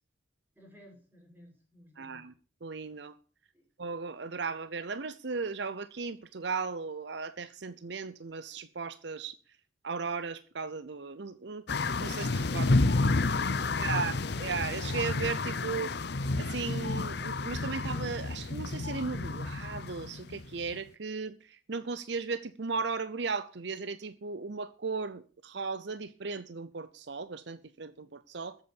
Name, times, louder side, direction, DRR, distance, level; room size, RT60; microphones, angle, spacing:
voice 1, 0.6-2.2 3.5-3.6 12.5-14.4, equal, 10° right, 5.8 m, -54 dB
voice 2, 2.0-2.3 2.6-3.1 3.8-9.4 9.8-11.6 12.0-12.6 13.8-15.9 16.4-28.6, right 4 dB, 60° right, 0.7 m, -36 dB
sound 1, 11.7-20.8, left 3 dB, 60° left, 0.7 m, -30 dB
13.5 x 8.3 x 7.2 m
head